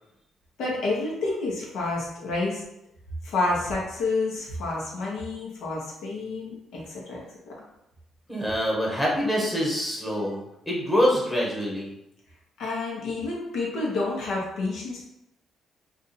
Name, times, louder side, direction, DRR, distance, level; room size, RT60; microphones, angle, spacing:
voice 1, 0.6-2.6 3.2-7.5 12.6-15.0, left 3 dB, 80° left, -4 dB, 1.0 m, -29 dB
voice 2, 8.3-10.4 10.6-11.9, equal, 5° left, -4 dB, 1.2 m, -25 dB
2.5 x 2.5 x 4.1 m, 0.85 s
cardioid pair, 90°, 0 cm